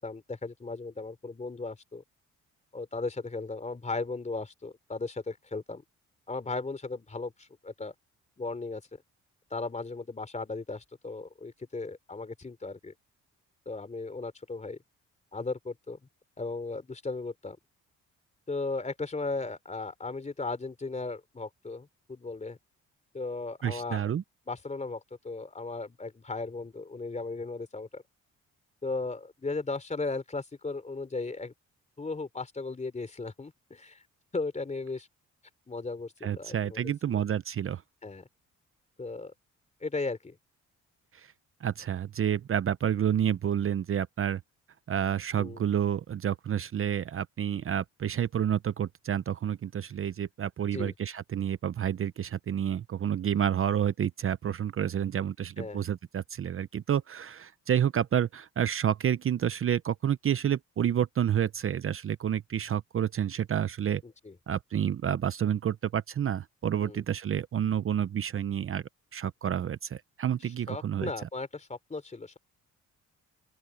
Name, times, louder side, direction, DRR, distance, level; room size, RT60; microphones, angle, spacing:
voice 1, 0.0-2.0 2.7-5.8 6.3-7.9 8.4-8.8 9.5-12.9 13.7-14.8 15.3-16.0 16.4-17.6 18.5-22.6 23.1-24.1 24.5-28.0 28.8-31.5 32.0-34.0 34.3-35.1 35.7-37.1 38.0-38.3 39.0-39.3 39.8-40.4 45.4-45.6 50.7-50.9 55.6-55.8 64.0-64.4 66.8-67.0 70.4-72.4, left 3 dB, 25° left, 3.6 m, -36 dB
voice 2, 23.6-24.2 36.2-37.8 41.1-41.3 41.6-44.4 44.9-64.0 64.5-68.8 69.1-71.1, right 9 dB, 45° right, 0.8 m, -29 dB
open air
cardioid pair, 90°, 30 cm